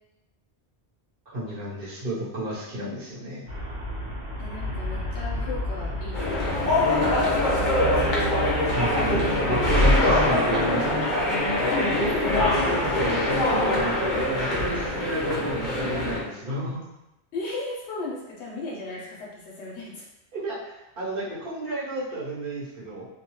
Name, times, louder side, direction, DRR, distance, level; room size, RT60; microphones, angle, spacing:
voice 1, 1.3-3.4 8.7-11.0 11.6-11.7 12.6-16.8 20.3-23.1, right 1 dB, 55° right, -8 dB, 1.0 m, -32 dB
Traffic noise roadway noise, 3.5-10.0, right 2 dB, 70° right, 1.3 m, -31 dB
voice 2, 4.4-8.3 17.3-20.0, left 2 dB, 85° left, -4 dB, 0.9 m, -37 dB
sound 1, 6.1-16.3, left 1 dB, 50° left, 0.8 m, -23 dB
2.6 x 2.2 x 2.9 m, 0.92 s
omnidirectional pair, 1.1 m